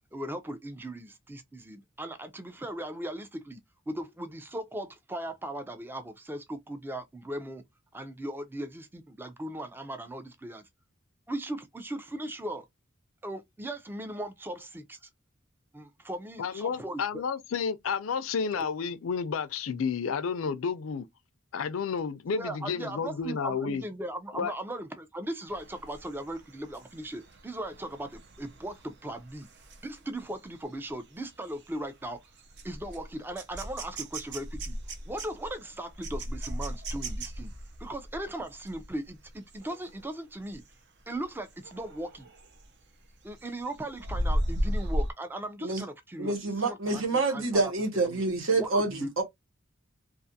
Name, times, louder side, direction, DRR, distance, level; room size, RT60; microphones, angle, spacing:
voice 1, 0.1-3.6 3.9-7.6 7.9-10.6 11.3-12.7 13.2-15.1 15.7-17.2 18.5-18.7 22.3-29.5 29.8-32.2 32.6-34.8 35.1-37.5 37.8-40.6 41.1-42.3 43.2-47.7 48.0-48.2 48.6-49.2, right 1 dB, 10° right, 0.4 m, -38 dB
voice 2, 16.4-21.1 21.5-23.8 24.4-24.5, left 6 dB, 80° left, 0.4 m, -31 dB
sound 1, 25.5-40.0 40.4-40.7 41.1-42.7 43.1-45.1, equal, 60° right, 0.6 m, -37 dB
voice 3, 46.2-49.2, right 3 dB, 75° right, 1.0 m, -27 dB
2.5 x 2.3 x 2.7 m
head